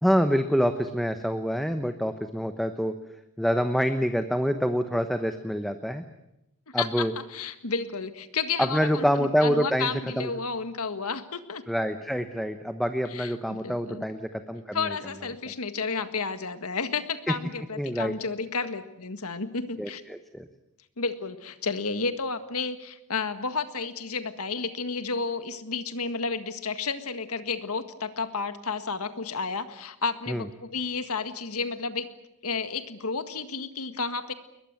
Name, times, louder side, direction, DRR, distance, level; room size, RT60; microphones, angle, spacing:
voice 1, 0.0-3.0 3.4-6.0 6.7-7.1 8.6-10.3 11.7-14.9 17.8-18.1 19.8-20.5 30.3-30.4, equal, ahead, 8 dB, 1.0 m, -26 dB
voice 2, 6.7-11.6 13.1-14.0 14.7-20.0 21.0-32.1 32.4-34.3, left 4 dB, 85° left, 10 dB, 1.8 m, -32 dB
22.0 x 21.0 x 9.1 m, 0.85 s
head